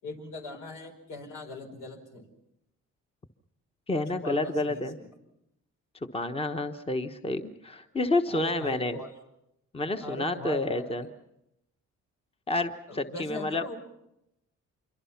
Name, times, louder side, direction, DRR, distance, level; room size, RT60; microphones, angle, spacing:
voice 1, 0.0-2.3 4.2-5.1 8.3-9.1 10.0-11.1 12.9-13.8, left 2 dB, 80° left, 3 dB, 5.1 m, -41 dB
voice 2, 3.9-5.0 6.0-9.0 9.7-11.1 12.5-13.6, left 2 dB, 20° left, 7 dB, 1.1 m, -29 dB
26.0 x 23.5 x 5.9 m, 0.85 s
cardioid pair, 90°, 30 cm